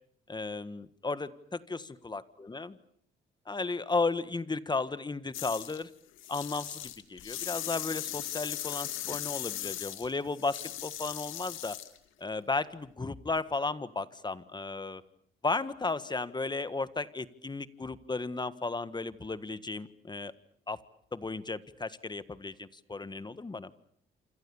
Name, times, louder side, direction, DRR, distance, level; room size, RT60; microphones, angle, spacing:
voice 1, 0.3-1.3 2.0-2.8 3.5-5.9 6.3-11.8 12.2-15.0 15.4-20.3 20.7-20.8 21.1-23.7, left 3 dB, 20° left, 14 dB, 1.6 m, -34 dB
sound 1, 5.3-5.8 6.2-12.0, left 12 dB, 85° left, 2.2 m, -38 dB
27.5 x 27.0 x 7.2 m, 0.65 s
cardioid pair, 90°, 20 cm